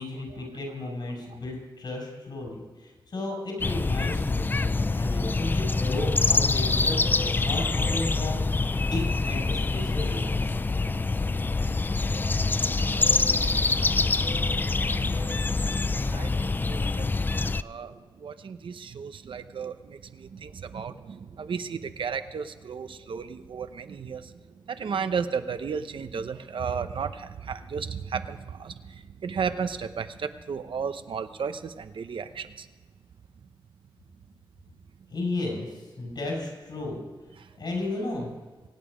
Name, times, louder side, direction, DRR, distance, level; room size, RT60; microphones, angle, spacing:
voice 1, 0.0-10.5 35.1-37.0 37.6-38.3, left 2 dB, 65° left, 0 dB, 5.4 m, -34 dB
sound 1, 3.6-17.6, left 3 dB, 25° left, 0.3 m, -25 dB
voice 2, 12.8-17.1 17.6-24.3 24.7-32.7 37.4-37.5, right 6 dB, 85° right, 10 dB, 0.8 m, -35 dB
24.0 x 9.2 x 5.0 m, 1.4 s
wide cardioid pair, 155°, 8 cm